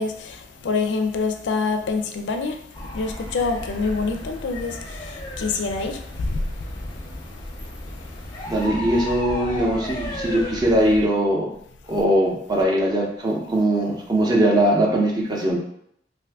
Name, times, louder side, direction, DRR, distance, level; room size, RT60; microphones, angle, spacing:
voice 1, 0.0-7.0 8.0-8.1, left 4 dB, 80° left, 5 dB, 0.4 m, -26 dB
sound 1, 2.7-11.1, left 1 dB, 25° left, 0.5 m, -34 dB
voice 2, 8.5-11.5 11.9-15.6, right 1 dB, 20° right, -1 dB, 0.5 m, -21 dB
2.5 x 2.4 x 3.4 m, 0.70 s
head